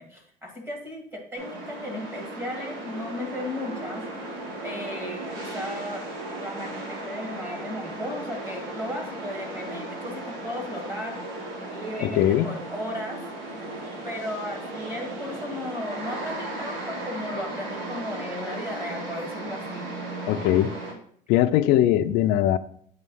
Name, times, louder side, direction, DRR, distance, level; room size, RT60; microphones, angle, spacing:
voice 1, 0.0-6.0 6.4-11.2 11.7-13.8 14.0-19.9 21.7-21.9, left 1 dB, 15° right, 1 dB, 1.8 m, -35 dB
sound 1, 1.3-20.9, right 2 dB, 85° right, 1.9 m, -36 dB
voice 2, 12.0-12.5 20.3-20.7 21.3-22.6, left 12 dB, 90° left, 11 dB, 0.5 m, -21 dB
8.1 x 3.2 x 5.5 m, 0.62 s
cardioid pair, 170°, 16 cm